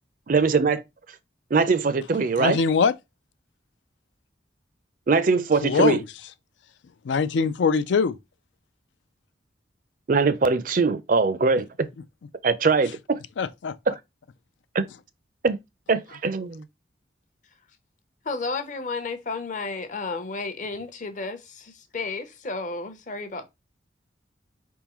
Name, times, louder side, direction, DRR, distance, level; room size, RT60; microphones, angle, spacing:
voice 1, 0.3-0.8 1.5-2.6 5.1-6.0 10.1-11.9 12.4-13.2 13.9-14.0 14.7-14.9 15.4-15.6 15.9-16.6, right 4 dB, 45° right, 0.4 m, -22 dB
voice 2, 2.4-2.9 5.6-6.0 7.0-8.1 13.4-13.7, left 5 dB, 80° left, 0.4 m, -22 dB
voice 3, 18.2-23.5, left 3 dB, 45° left, 0.7 m, -32 dB
4.7 x 3.6 x 3.0 m
head